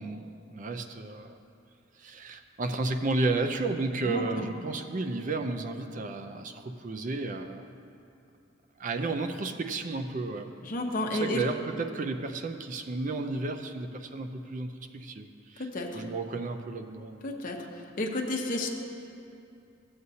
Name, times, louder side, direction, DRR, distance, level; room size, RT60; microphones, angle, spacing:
voice 1, 0.0-1.4 2.0-7.7 8.8-10.5 11.1-15.7 15.9-17.2, right 3 dB, 40° right, 7 dB, 0.5 m, -32 dB
voice 2, 4.0-4.5 10.6-11.4 15.6-16.0 17.2-17.6 18.0-18.7, left 2 dB, 45° left, 1 dB, 0.9 m, -31 dB
15.5 x 7.8 x 2.8 m, 2.6 s
head